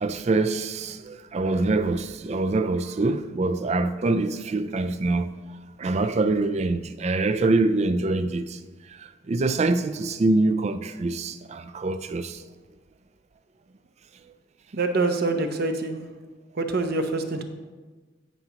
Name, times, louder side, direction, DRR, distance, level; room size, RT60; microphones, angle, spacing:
voice 1, 0.0-5.3 5.8-8.6 9.3-12.4, right 2 dB, 35° right, 0.4 m, -24 dB
voice 2, 14.7-16.0 16.6-17.4, right 3 dB, 55° right, 0.8 m, -25 dB
17.0 x 5.8 x 2.9 m
head